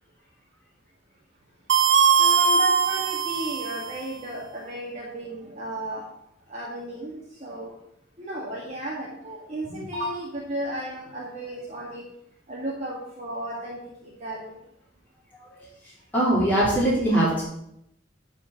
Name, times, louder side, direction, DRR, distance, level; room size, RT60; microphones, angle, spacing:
sound 1, 1.7-4.1, right 6 dB, 70° right, 0.7 m, -21 dB
voice 1, 2.2-6.0 6.5-7.7 8.2-12.1 12.5-14.6, right 1 dB, 35° right, -4 dB, 1.7 m, -34 dB
voice 2, 15.3-15.7 16.1-17.4, right 1 dB, 10° left, -9 dB, 3.1 m, -22 dB
10.0 x 4.5 x 7.0 m, 0.79 s
head